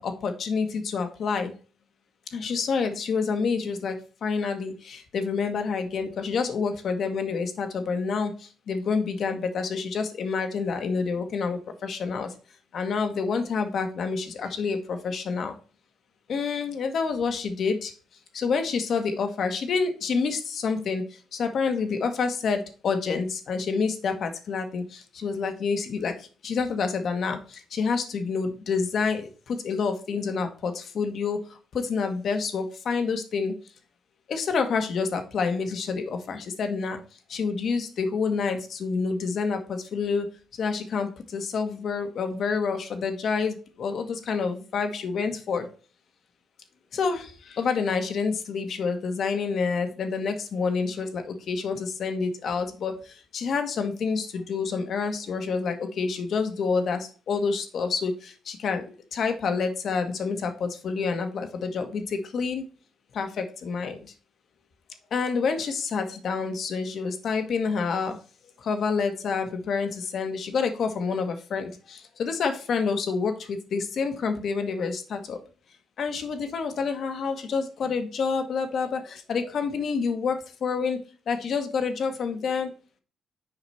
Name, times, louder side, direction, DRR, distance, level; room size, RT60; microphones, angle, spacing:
voice 1, 0.0-1.5 2.3-12.3 12.7-15.5 16.3-17.9 18.3-21.0 21.3-26.1 26.4-31.4 31.7-33.5 34.3-37.0 37.3-40.3 40.6-45.7 46.9-52.9 53.3-62.6 63.1-64.0 65.1-68.2 68.6-75.4 76.0-81.0 81.3-82.7, left 5 dB, 60° left, 7 dB, 1.5 m, -28 dB
6.7 x 5.0 x 4.3 m, 0.37 s
cardioid pair, 90°, 0 cm